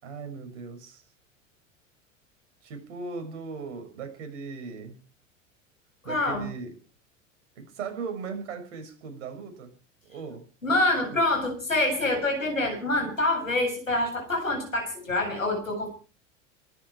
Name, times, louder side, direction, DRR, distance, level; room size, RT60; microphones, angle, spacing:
voice 1, 0.0-1.0 2.6-4.9 6.0-6.7 7.5-9.7 10.0-10.4 11.1-11.2, right 5 dB, 65° right, 6 dB, 6.6 m, -38 dB
voice 2, 6.0-6.5 10.6-15.9, left 2 dB, 85° left, 3 dB, 7.6 m, -26 dB
23.5 x 11.5 x 4.9 m, 0.37 s
figure-of-eight pair, 80°, 39 cm